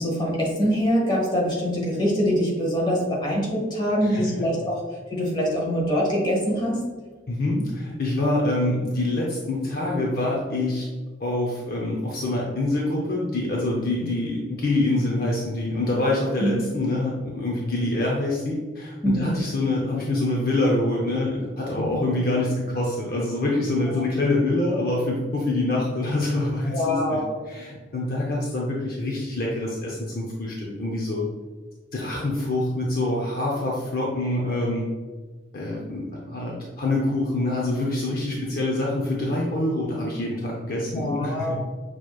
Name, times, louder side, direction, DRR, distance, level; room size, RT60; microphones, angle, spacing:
voice 1, 0.0-4.8 5.1-6.8 16.4-16.5 19.0-19.3 21.8-22.1 23.9-24.0 26.6-27.4 40.9-41.6, equal, 25° left, -3 dB, 1.2 m, -24 dB
voice 2, 7.3-10.9 11.2-27.2 27.5-31.2 31.9-34.8 35.5-41.6, left 2 dB, 50° left, -3 dB, 0.6 m, -25 dB
6.5 x 3.0 x 2.3 m, 1.4 s
head